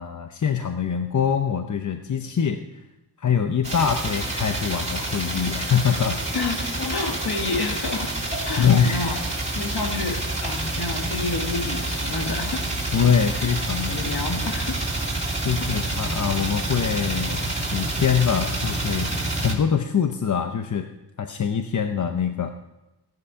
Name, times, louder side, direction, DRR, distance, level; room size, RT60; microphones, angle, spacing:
voice 1, 0.0-2.6 3.2-6.2 8.6-9.0 12.9-14.4 15.4-19.1 19.4-20.9 21.2-22.5, left 7 dB, 45° left, 6 dB, 0.7 m, -24 dB
sound 1, 3.6-19.5, right 2 dB, 15° right, 2.2 m, -28 dB
voice 2, 6.3-9.2 9.6-12.7 13.9-14.8 15.6-15.8, left 3 dB, 60° left, 4 dB, 1.8 m, -29 dB
15.5 x 10.5 x 5.7 m, 0.97 s
wide cardioid pair, 155°, 42 cm